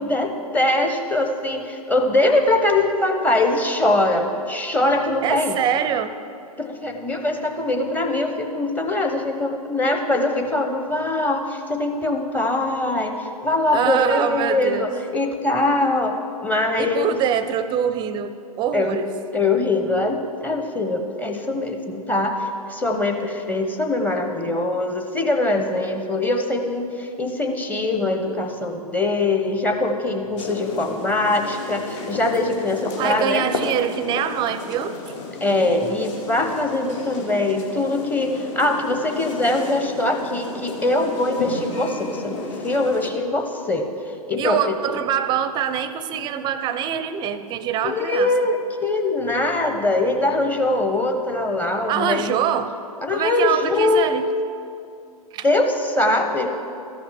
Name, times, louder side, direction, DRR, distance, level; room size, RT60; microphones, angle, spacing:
voice 1, 0.0-5.6 6.6-16.2 16.4-17.1 18.7-19.0 19.3-33.5 35.4-43.9 44.3-44.8 47.8-52.3 53.0-54.1 55.4-56.5, left 2 dB, 10° left, 4 dB, 0.8 m, -22 dB
voice 2, 5.2-6.2 13.7-14.9 16.8-19.1 33.0-34.9 44.4-48.3 51.9-52.7 53.1-54.3 55.3-55.5, right 9 dB, 25° right, 12 dB, 0.5 m, -24 dB
sound 1, 30.4-43.1, left 3 dB, 50° left, 1.3 m, -33 dB
13.5 x 5.8 x 5.7 m, 2.6 s
figure-of-eight pair, 110°, 20 cm